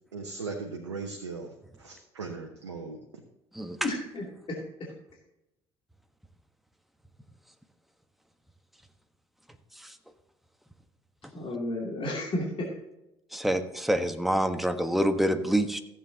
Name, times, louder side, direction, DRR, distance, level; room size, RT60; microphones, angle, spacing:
voice 1, 0.1-3.0, right 4 dB, 90° right, 2 dB, 1.0 m, -38 dB
voice 2, 3.8-4.6 11.3-12.7, left 1 dB, 40° left, -3 dB, 2.8 m, -32 dB
voice 3, 13.3-15.8, right 1 dB, ahead, 7 dB, 1.2 m, -26 dB
15.0 x 7.9 x 2.8 m, 0.91 s
hypercardioid pair, 60°, 14 cm